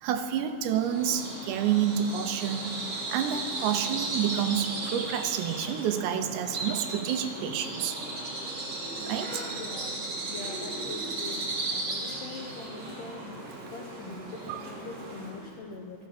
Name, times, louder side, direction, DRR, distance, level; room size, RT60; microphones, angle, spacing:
voice 1, 0.0-8.0 9.0-9.5 14.5-14.6, right 9 dB, 80° right, 8 dB, 2.9 m, -29 dB
Bird vocalization bird call bird song, 0.7-15.5, right 2 dB, 40° right, 3.0 m, -36 dB
voice 2, 9.6-10.0 10.3-11.4 11.7-13.4 13.7-16.1, left 3 dB, 80° left, 1 dB, 1.9 m, -42 dB
14.0 x 12.5 x 5.9 m, 2.5 s
omnidirectional pair, 5.1 m